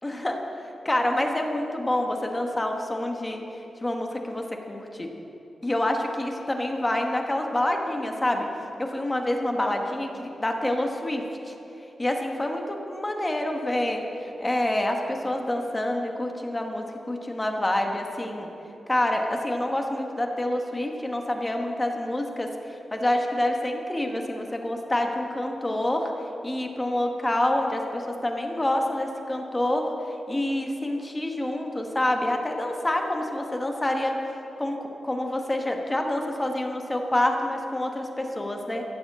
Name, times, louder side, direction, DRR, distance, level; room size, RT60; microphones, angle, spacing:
voice 1, 0.0-3.4 3.8-5.1 5.6-8.5 8.8-11.5 12.0-18.5 18.9-26.1 26.4-29.9 30.3-34.2 34.6-34.8 35.0-38.8, left 1 dB, 15° left, 3 dB, 1.2 m, -27 dB
14.0 x 7.9 x 7.4 m, 3.0 s
wide cardioid pair, 140°, 0 cm